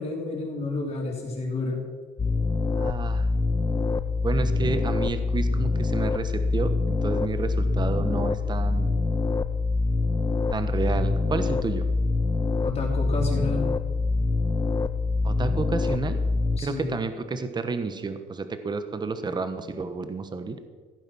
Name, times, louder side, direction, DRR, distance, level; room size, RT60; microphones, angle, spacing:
voice 1, 0.0-1.9 12.6-13.8 16.6-16.9, left 3 dB, 35° left, -2 dB, 4.5 m, -30 dB
sound 1, 2.2-16.6, left 3 dB, 20° left, 0.7 m, -25 dB
voice 2, 2.8-3.3 4.2-8.9 10.5-11.9 15.2-16.2 16.6-20.6, right 4 dB, 25° right, 10 dB, 1.1 m, -30 dB
15.5 x 9.0 x 6.2 m, 1.5 s
cardioid pair, 110°, 17 cm